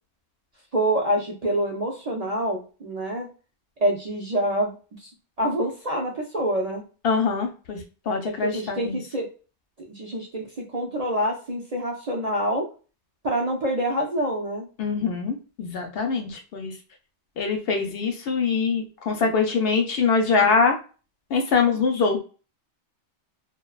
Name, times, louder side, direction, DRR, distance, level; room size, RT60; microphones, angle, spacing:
voice 1, 0.7-3.3 3.8-4.7 5.0-5.1 5.4-6.8 8.4-9.3 9.8-12.6 13.2-14.6, right 1 dB, 50° right, 0 dB, 0.5 m, -26 dB
voice 2, 7.0-9.0 14.8-16.7 17.4-20.8 21.3-22.2, left 5 dB, 65° left, 4 dB, 0.7 m, -23 dB
2.5 x 2.1 x 2.3 m, 0.35 s
omnidirectional pair, 1.2 m